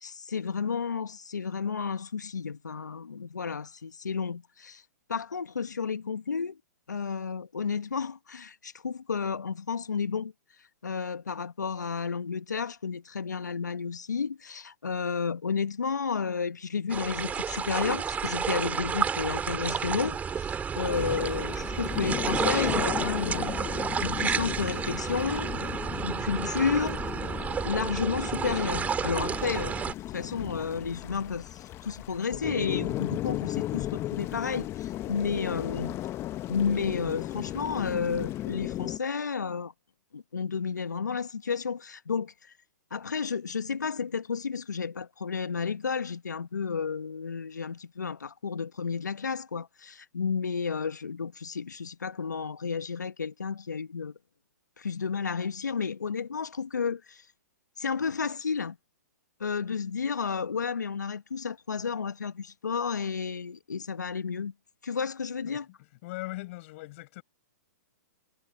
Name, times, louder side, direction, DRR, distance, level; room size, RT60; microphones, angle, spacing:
voice 1, 0.0-4.8 5.1-6.6 6.9-10.3 10.8-23.6 24.0-25.5 26.0-27.0 27.6-29.8 30.1-36.0 36.5-39.7 40.1-42.5 42.9-54.2 54.8-57.3 57.8-58.8 59.4-64.5 64.8-65.7, left 5 dB, 85° left, 1.4 m, -32 dB
sound 1, 16.9-29.9, right 7 dB, 15° right, 5.4 m, -31 dB
sound 2, 20.8-39.0, left 14 dB, 30° left, 1.1 m, -36 dB
voice 2, 66.0-67.2, left 20 dB, 50° left, 7.1 m, -39 dB
hypercardioid pair, 120°, 9 cm